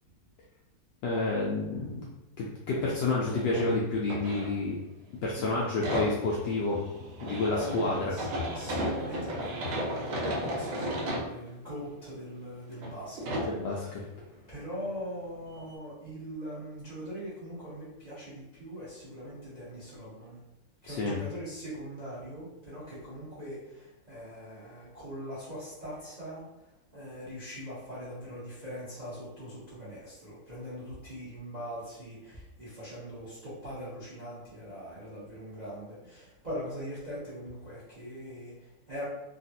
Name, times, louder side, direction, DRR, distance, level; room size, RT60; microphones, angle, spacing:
voice 1, 1.0-2.1 2.4-4.8 5.2-6.8 7.2-8.1 13.4-13.9 20.9-21.2, left 3 dB, 75° left, -4 dB, 1.0 m, -29 dB
sound 1, 2.7-3.0 3.3-5.0 5.3-11.3 11.9-12.0 12.7-12.9 13.2-13.6 15.3-15.4 15.7-15.8, equal, 75° right, 1.4 m, -34 dB
voice 2, 7.5-8.3 8.5-14.0 14.5-20.4 20.8-39.0, equal, 55° right, -10 dB, 0.4 m, -41 dB
3.3 x 2.3 x 2.7 m, 0.95 s
omnidirectional pair, 2.3 m